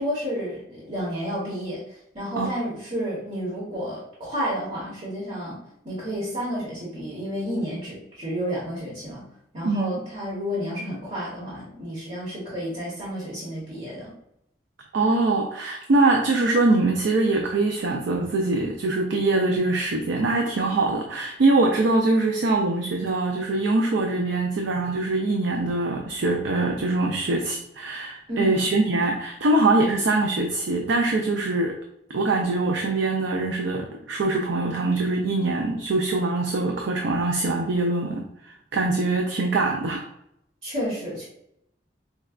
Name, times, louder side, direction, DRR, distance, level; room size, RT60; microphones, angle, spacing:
voice 1, 0.0-5.6 5.8-9.2 9.5-14.1 28.3-28.6 40.6-41.3, equal, 40° right, -7 dB, 1.0 m, -31 dB
voice 2, 14.9-31.8 32.1-40.0, right 2 dB, 80° right, 2 dB, 0.4 m, -23 dB
4.5 x 2.2 x 2.3 m, 0.77 s
head